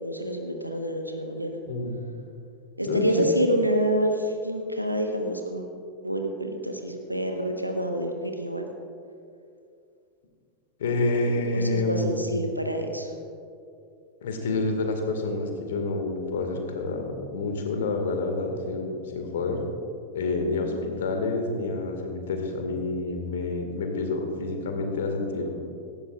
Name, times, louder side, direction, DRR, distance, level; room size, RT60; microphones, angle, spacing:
voice 1, 0.0-1.6 2.8-5.6 6.0-8.7 11.5-13.1 20.4-20.7, right 1 dB, 90° right, 3 dB, 1.2 m, -27 dB
voice 2, 1.7-2.1 2.8-3.3 10.8-12.3 14.2-19.6 20.1-25.5, left 3 dB, 60° left, 4 dB, 1.9 m, -28 dB
17.5 x 14.5 x 2.5 m, 2.5 s
figure-of-eight pair, 90°, 0 cm